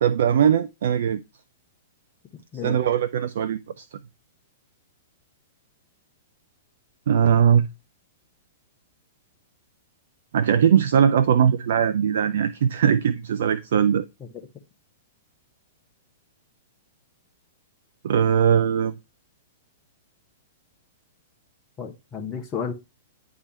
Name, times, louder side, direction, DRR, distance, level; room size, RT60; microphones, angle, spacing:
voice 1, 0.0-1.2 2.6-3.8 7.1-7.7 10.3-14.1 18.0-18.9, right 8 dB, 60° right, 0.5 m, -20 dB
voice 2, 2.3-2.8 14.2-14.3 21.8-22.7, left 6 dB, 25° left, 1.3 m, -32 dB
10.0 x 3.7 x 4.3 m
figure-of-eight pair, 105°, 0 cm